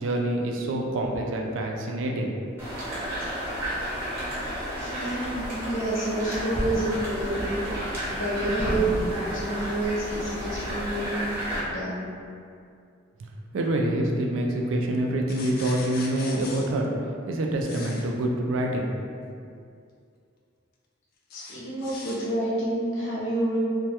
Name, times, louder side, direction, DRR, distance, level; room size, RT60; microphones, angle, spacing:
voice 1, 0.0-2.3 13.2-13.3 13.5-16.9 17.3-18.9, right 1 dB, 80° right, 0 dB, 0.3 m, -26 dB
sound 1, 2.6-11.6, equal, 15° right, 0.7 m, -31 dB
sound 2, 2.8-3.0 4.2-4.4 5.1-5.7 6.2-6.4 6.9-7.1 7.6-7.7, right 1 dB, 50° right, 0.7 m, -42 dB
voice 2, 4.8-7.6 8.1-11.2 11.7-12.1 21.3-23.6, right 1 dB, 80° left, -7 dB, 0.7 m, -29 dB
sound 3, 15.3-16.7 17.6-18.0 21.3-22.2, left 3 dB, 50° left, 0.3 m, -40 dB
2.2 x 2.1 x 2.8 m, 2.3 s
head